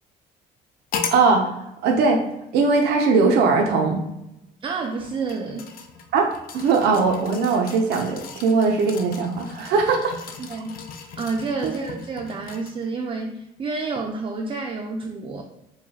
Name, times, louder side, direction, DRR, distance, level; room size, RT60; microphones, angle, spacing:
sound 1, 0.9-1.3 2.3-2.4 4.8-12.9 13.4-13.5, left 6 dB, 60° left, 0.5 m, -37 dB
voice 1, 1.1-1.5 1.8-2.2 2.5-4.0 6.1-6.3 6.5-10.1 11.6-11.7, right 4 dB, 75° right, 2 dB, 0.6 m, -20 dB
voice 2, 4.6-5.7 10.4-10.7 11.2-15.4, right 4 dB, 30° right, 2 dB, 0.4 m, -29 dB
4.7 x 2.2 x 2.8 m, 0.87 s
cardioid pair, 110°, 17 cm